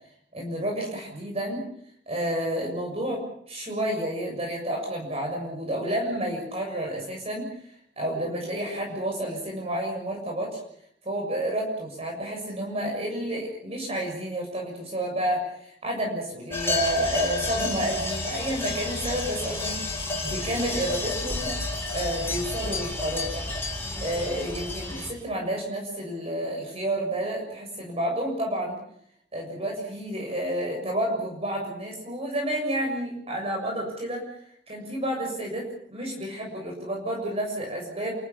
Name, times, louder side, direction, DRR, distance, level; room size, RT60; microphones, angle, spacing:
voice 1, 0.3-1.6 2.1-7.5 8.0-10.6 11.0-21.5 21.9-23.5 24.0-28.8 29.3-34.3 34.7-38.1, right 1 dB, 35° right, 0 dB, 7.2 m, -30 dB
sound 1, 16.5-25.1, left 2 dB, 15° left, 7.3 m, -31 dB
29.5 x 15.0 x 8.7 m, 0.69 s
head